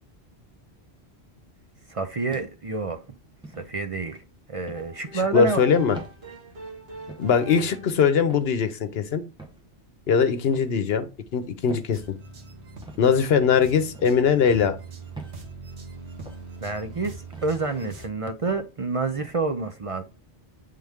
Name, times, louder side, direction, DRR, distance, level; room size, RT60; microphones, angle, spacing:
voice 1, 1.9-3.0 3.6-4.2 4.5-5.6 16.6-20.0, right 3 dB, 40° right, 0.5 m, -28 dB
sound 1, 2.3-2.8 3.4-3.7 4.7-4.9 5.9-6.2 7.1-7.3 8.3-8.5 9.4-9.6 10.4-10.7 11.7-11.9 12.8-13.0 13.9-14.2 15.1-15.4 16.2-16.4 17.3-17.6 18.5-18.7, right 2 dB, 5° right, 1.0 m, -43 dB
sound 2, 4.7-8.1, right 3 dB, 65° right, 1.7 m, -43 dB
voice 2, 5.3-6.0 7.2-9.2 10.1-11.1 11.3-12.0 13.0-14.8, left 6 dB, 70° left, 1.0 m, -21 dB
sound 3, 11.9-18.1, right 3 dB, 80° right, 1.4 m, -42 dB
7.7 x 3.7 x 3.5 m
omnidirectional pair, 1.1 m